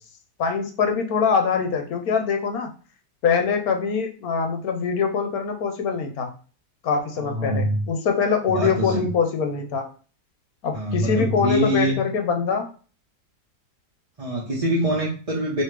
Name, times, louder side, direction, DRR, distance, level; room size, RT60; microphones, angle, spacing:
voice 1, 0.4-2.7 3.2-6.3 6.8-9.9 10.6-12.7, left 5 dB, 65° left, 5 dB, 1.2 m, -23 dB
voice 2, 7.2-7.8 8.5-9.1 10.7-12.0 14.2-15.6, right 1 dB, 30° right, -7 dB, 0.8 m, -24 dB
4.9 x 3.1 x 3.3 m, 0.38 s
omnidirectional pair, 1.8 m